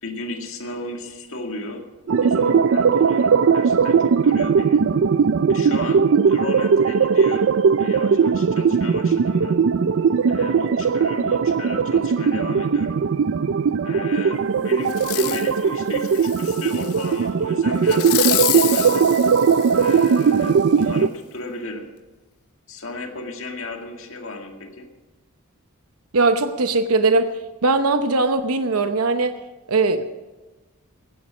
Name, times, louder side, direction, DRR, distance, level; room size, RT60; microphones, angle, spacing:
voice 1, 0.0-1.9 2.2-4.8 5.5-7.5 7.8-9.6 10.3-13.0 13.8-19.1 19.7-21.9 22.7-24.9, left 2 dB, 65° left, 3 dB, 2.0 m, -34 dB
sound 1, 2.1-21.1, right 6 dB, 60° right, 0.4 m, -19 dB
Fireworks, 14.9-15.5 16.0-17.1 17.9-20.3 20.8-20.9, left 17 dB, 85° left, 0.5 m, -28 dB
voice 2, 26.1-27.3 27.6-29.4 29.7-30.0, right 3 dB, 85° right, 9 dB, 0.8 m, -19 dB
16.0 x 10.0 x 6.2 m, 1.2 s
head